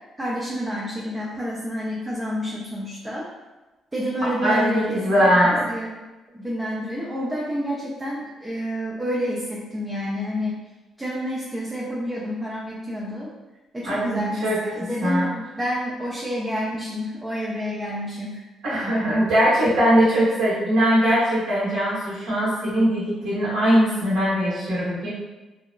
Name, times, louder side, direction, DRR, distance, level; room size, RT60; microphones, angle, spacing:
voice 1, 0.2-3.3 3.9-5.3 5.7-5.9 6.3-10.6 11.0-13.3 13.7-18.4, equal, 20° right, -5 dB, 0.4 m, -29 dB
voice 2, 4.4-5.7 13.8-15.3 18.6-25.1, equal, 90° right, -9 dB, 1.1 m, -21 dB
2.8 x 2.0 x 2.3 m, 1.1 s
cardioid pair, 90°, 0 cm